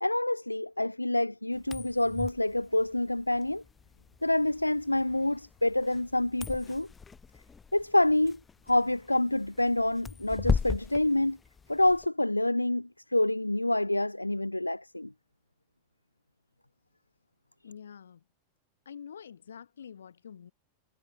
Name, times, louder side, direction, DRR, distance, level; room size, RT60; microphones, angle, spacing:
voice 1, 0.0-3.6 4.2-6.9 7.7-8.4 8.7-11.4 11.7-15.1, left 1 dB, 85° left, 0.3 m, -27 dB
sound 1, 1.6-12.1, left 5 dB, 15° left, 2.7 m, -38 dB
voice 2, 17.6-18.2 18.8-20.5, left 7 dB, 70° left, 6.2 m, -46 dB
figure-of-eight pair, 90°, 0 cm